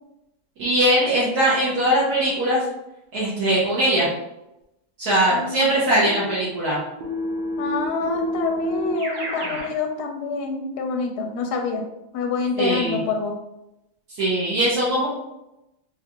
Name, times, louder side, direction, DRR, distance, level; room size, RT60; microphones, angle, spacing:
voice 1, 0.6-2.6 3.1-4.1 5.0-6.8 12.6-13.0 14.2-15.1, right 1 dB, 70° right, -9 dB, 1.4 m, -20 dB
voice 2, 5.3-6.3 7.6-11.9 12.1-13.4, left 4 dB, 80° left, 3 dB, 1.1 m, -27 dB
Keyboard (musical), 7.0-9.7, left 1 dB, 55° right, 0.9 m, -28 dB
3.7 x 2.4 x 2.8 m, 0.90 s
omnidirectional pair, 1.7 m